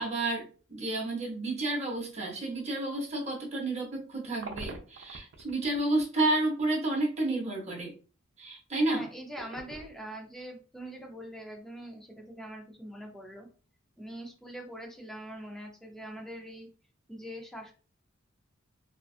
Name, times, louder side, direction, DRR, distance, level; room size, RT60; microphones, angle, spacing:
voice 1, 0.0-7.9 8.4-9.1, right 2 dB, 35° right, 0 dB, 0.7 m, -31 dB
sound 1, 4.1-6.1 6.6-6.7 9.3-10.4 10.8-10.9 14.4-14.8 15.2-15.3, right 3 dB, 70° right, 0.4 m, -45 dB
voice 2, 8.9-13.5 14.0-16.7 17.1-17.7, equal, ahead, 1 dB, 0.5 m, -43 dB
2.5 x 2.3 x 2.4 m, 0.37 s
head